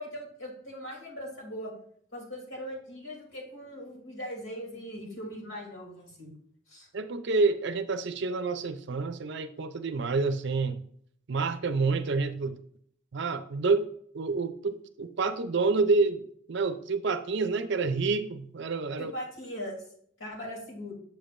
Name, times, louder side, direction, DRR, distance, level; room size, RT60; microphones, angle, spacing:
voice 1, 0.0-1.7 2.1-6.3 6.7-6.9 19.0-19.8 20.2-20.9, equal, 70° left, -2 dB, 2.9 m, -40 dB
voice 2, 6.9-10.8 11.3-12.6 13.1-13.9 14.1-19.1, right 4 dB, 60° right, 11 dB, 0.5 m, -28 dB
7.3 x 7.1 x 2.5 m, 0.63 s
head